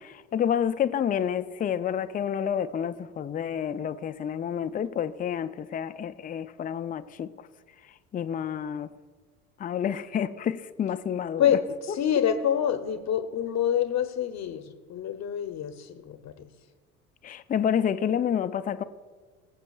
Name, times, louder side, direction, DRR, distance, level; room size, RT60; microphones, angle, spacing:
voice 1, 0.0-7.5 8.1-8.9 9.6-11.5 11.9-12.0 17.2-18.8, left 8 dB, 20° left, 0.5 m, -29 dB
voice 2, 11.4-16.5, left 9 dB, 40° left, 0.9 m, -27 dB
22.0 x 7.5 x 2.4 m
hypercardioid pair, 65°, 42 cm